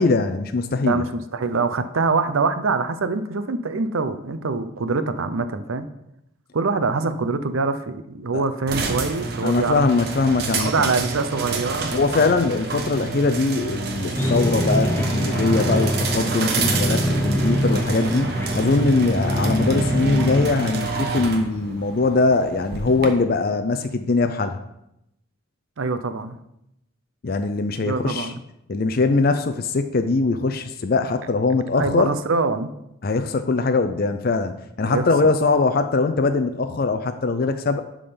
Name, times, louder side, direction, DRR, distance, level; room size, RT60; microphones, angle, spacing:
voice 1, 0.0-1.0 8.3-8.4 9.4-10.9 11.9-24.6 27.2-28.3 28.7-32.1 33.0-37.8, left 3 dB, 45° left, 8 dB, 0.4 m, -21 dB
voice 2, 0.8-5.9 6.5-9.8 10.5-12.0 25.8-26.4 27.8-28.4 31.8-32.7 34.9-35.0, right 4 dB, 80° right, 10 dB, 0.6 m, -24 dB
sound 1, 8.7-23.1, right 3 dB, 50° right, 1.0 m, -28 dB
sound 2, 14.2-20.4, equal, 10° left, 0.7 m, -24 dB
11.0 x 3.8 x 5.1 m, 0.83 s
head